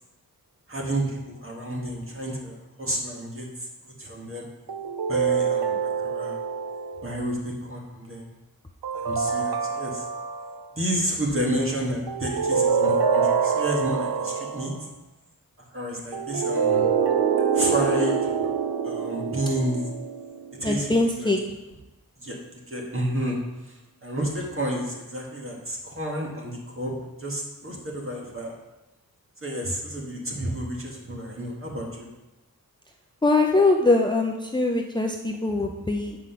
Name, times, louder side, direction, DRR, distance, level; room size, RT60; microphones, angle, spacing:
voice 1, 0.7-3.5 3.9-4.5 5.1-5.8 6.0-6.4 7.0-8.3 8.9-10.0 10.8-14.7 15.7-16.9 17.5-18.2 18.8-19.8 20.6-20.9 21.2-21.3 22.2-23.4 23.7-23.8 24.0-26.9 27.2-28.5 29.4-32.1 35.5-35.6, right 1 dB, 35° right, -2 dB, 1.9 m, -30 dB
sound 1, 4.7-7.2 8.8-10.7 12.1-14.8 16.1-20.6, right 6 dB, 90° right, 0.7 m, -25 dB
voice 2, 20.6-21.4 33.2-36.2, left 2 dB, 15° left, 1 dB, 0.5 m, -22 dB
7.9 x 4.9 x 5.8 m, 1.0 s
wide cardioid pair, 95°, 36 cm